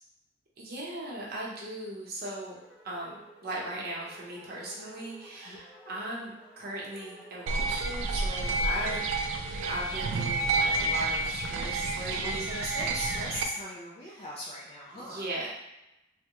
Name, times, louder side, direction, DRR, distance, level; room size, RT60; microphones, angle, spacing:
voice 1, 0.6-2.6 2.8-9.0 9.6-12.5 14.1-14.2 14.9-15.6, right 1 dB, 55° right, -4 dB, 0.8 m, -38 dB
flute vibrato, 2.5-9.9, equal, 5° right, 0.8 m, -53 dB
sound 1, 7.5-13.4, right 2 dB, 75° right, 0.3 m, -30 dB
voice 2, 12.2-15.3, left 1 dB, 30° left, -5 dB, 0.4 m, -39 dB
3.4 x 2.1 x 2.9 m, 0.91 s
head